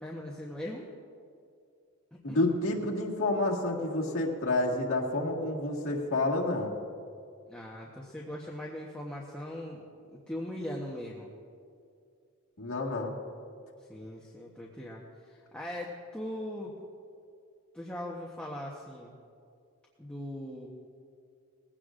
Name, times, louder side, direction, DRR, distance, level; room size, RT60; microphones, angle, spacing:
voice 1, 0.0-0.8 2.3-2.5 7.5-9.8 10.1-11.3 13.9-16.7 17.7-19.2 20.0-20.7, left 1 dB, 5° left, -4 dB, 1.0 m, -40 dB
voice 2, 2.2-6.7 12.6-13.1, left 2 dB, 70° left, -2 dB, 1.8 m, -29 dB
20.0 x 16.0 x 2.5 m, 2.3 s
head